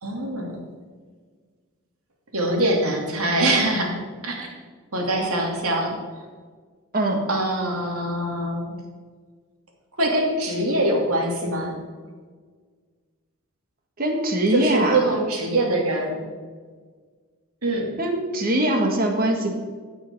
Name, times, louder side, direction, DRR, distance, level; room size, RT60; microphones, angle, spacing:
voice 1, 0.0-0.6 2.3-4.0 4.2-4.5 4.9-6.3 7.3-8.8 10.0-11.8 14.5-16.2 17.6-17.9, right 1 dB, 85° right, 1 dB, 2.6 m, -23 dB
voice 2, 14.0-15.0 18.0-19.5, right 1 dB, 40° right, 3 dB, 1.7 m, -22 dB
16.0 x 5.8 x 5.4 m, 1.6 s
head